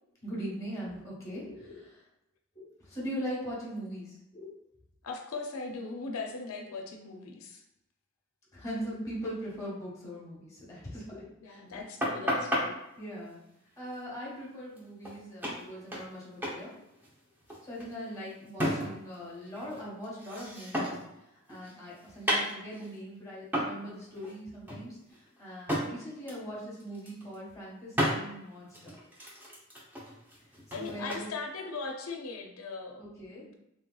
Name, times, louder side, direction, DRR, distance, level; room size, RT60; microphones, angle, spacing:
voice 1, 0.2-2.0 2.5-4.5 8.5-11.8 13.0-13.4 13.8-16.8 17.6-21.0 21.5-28.9 30.7-31.3 33.0-33.4, equal, 15° left, -5 dB, 1.2 m, -41 dB
voice 2, 5.0-7.6 11.4-12.8 30.7-33.0 33.5-33.6, left 4 dB, 90° left, 2 dB, 0.5 m, -39 dB
sound 1, 12.0-12.6 14.8-14.9 15.0-15.2 15.4-16.2 16.4-16.6 16.9-19.1 19.5-21.1 21.5-22.9 23.5-23.8 24.1-24.3 24.7-25.9 26.3-26.5 26.8-27.4 27.9-28.2 28.7-31.2, equal, 10° right, 0.6 m, -33 dB
3.2 x 2.9 x 2.2 m, 0.85 s
head